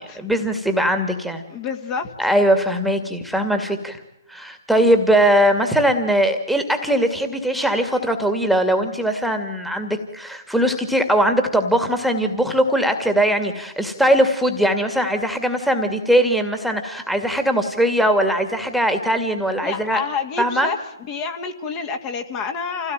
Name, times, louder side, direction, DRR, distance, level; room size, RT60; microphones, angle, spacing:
voice 1, 0.2-1.4 2.2-4.0 4.3-20.0 20.4-20.7, equal, ahead, 6 dB, 2.3 m, -20 dB
voice 2, 1.5-2.1 19.6-20.8 21.1-22.9, left 5 dB, 25° left, 6 dB, 2.2 m, -28 dB
28.0 x 17.5 x 9.0 m, 0.92 s
hypercardioid pair, 145°, 2 cm